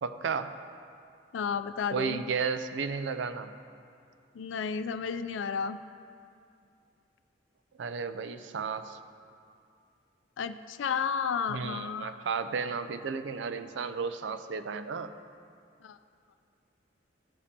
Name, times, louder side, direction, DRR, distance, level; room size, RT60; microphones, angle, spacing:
voice 1, 0.0-0.5 1.9-3.5 7.8-9.0 11.5-15.1, right 5 dB, 70° right, 10 dB, 0.4 m, -33 dB
voice 2, 1.3-2.2 4.3-5.8 10.4-12.2 15.8-16.0, left 6 dB, 90° left, 12 dB, 0.4 m, -32 dB
15.0 x 5.1 x 2.8 m, 2.4 s
head